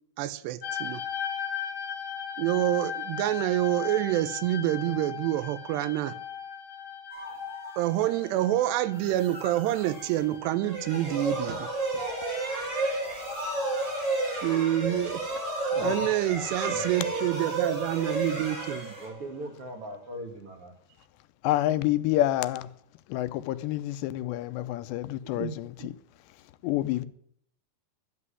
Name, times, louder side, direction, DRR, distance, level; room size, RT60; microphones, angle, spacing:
voice 1, 0.2-1.0 2.4-6.2 7.8-11.7 14.4-15.2 15.8-18.9 25.3-25.6, right 14 dB, 85° right, 2.9 m, -27 dB
sound 1, 0.6-13.6 13.8-14.6 15.4-15.6, left 8 dB, 55° left, 3.1 m, -39 dB
sound 2, 7.1-8.5 8.9-10.4 10.8-19.1, left 1 dB, ahead, 4.4 m, -45 dB
sound 3, 10.6-19.4, right 2 dB, 25° right, 5.9 m, -31 dB
voice 2, 15.8-16.1 16.7-16.9 21.4-22.7 23.1-25.9 26.6-27.1, left 14 dB, 90° left, 2.9 m, -28 dB
voice 3, 18.9-20.7, right 1 dB, 45° right, 2.0 m, -40 dB
12.0 x 7.7 x 9.7 m
omnidirectional pair, 4.8 m